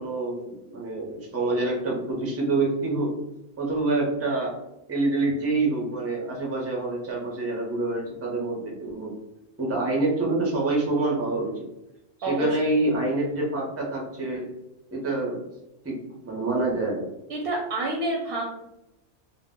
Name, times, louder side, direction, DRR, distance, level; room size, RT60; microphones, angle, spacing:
voice 1, 0.0-3.2 3.6-4.6 4.9-9.1 9.6-11.7 12.3-14.5 14.9-15.4 15.8-16.0 16.2-17.1, right 2 dB, 20° right, -2 dB, 0.4 m, -26 dB
voice 2, 12.2-12.7 17.3-18.6, right 2 dB, 65° right, -1 dB, 0.7 m, -28 dB
2.1 x 2.0 x 3.5 m, 0.89 s
omnidirectional pair, 1.2 m